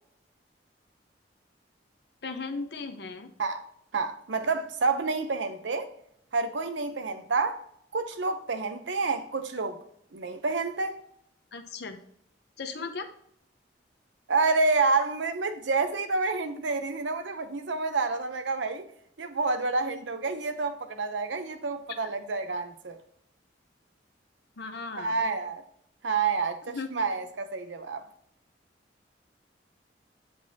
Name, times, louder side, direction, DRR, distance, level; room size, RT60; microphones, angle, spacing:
voice 1, 2.2-3.3 11.5-12.0 12.6-13.1 24.6-25.2 26.6-26.9, left 4 dB, 60° left, 0.8 m, -36 dB
voice 2, 3.9-5.9 6.3-7.6 7.9-9.8 10.1-11.0 14.3-18.9 19.2-23.0 25.0-25.6 26.0-28.0, right 4 dB, 80° right, 0.7 m, -28 dB
8.7 x 4.0 x 2.8 m
head